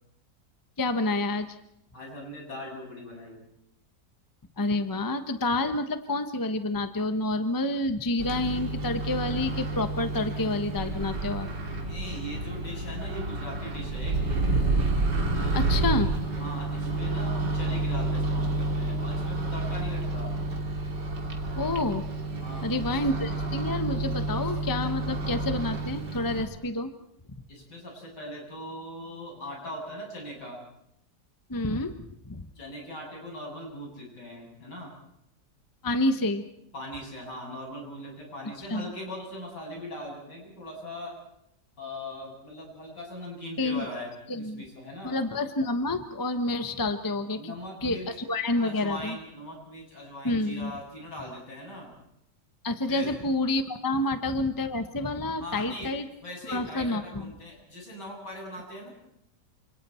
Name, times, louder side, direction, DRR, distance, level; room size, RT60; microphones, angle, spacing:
voice 1, 0.8-1.6 4.6-11.5 15.5-16.1 21.6-22.1 22.6-26.9 31.5-32.4 35.8-36.5 38.7-38.9 43.6-43.9 44.3-44.6 45.0-47.5 47.8-49.2 50.2-50.7 52.6-56.1 56.5-57.3, left 2 dB, 15° left, 8 dB, 1.0 m, -28 dB
voice 2, 1.9-3.4 11.9-14.1 15.3-16.0 16.4-20.3 22.4-22.8 27.5-30.6 32.5-34.9 36.7-41.1 41.8-45.2 47.4-48.1 48.6-51.9 52.9-53.1 55.4-55.9 56.2-58.9, left 1 dB, 75° left, -1 dB, 8.4 m, -40 dB
Microwave oven, 8.2-26.5, right 2 dB, 80° right, 3.0 m, -29 dB
29.0 x 26.5 x 4.5 m, 0.78 s
omnidirectional pair, 1.8 m